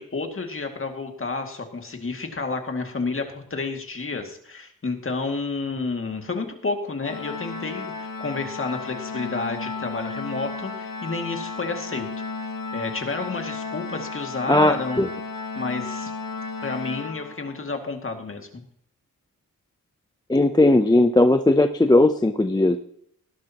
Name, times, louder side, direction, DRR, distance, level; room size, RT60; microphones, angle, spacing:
voice 1, 0.0-12.1 12.7-15.0 15.6-16.1 16.6-18.6, left 3 dB, 35° left, 4 dB, 2.2 m, -30 dB
Organ, 7.0-17.8, left 4 dB, 70° left, 1.9 m, -34 dB
voice 2, 14.5-15.1 20.3-22.8, left 2 dB, 10° left, 8 dB, 0.6 m, -18 dB
18.5 x 11.5 x 2.9 m, 0.68 s
wide cardioid pair, 125°, 35 cm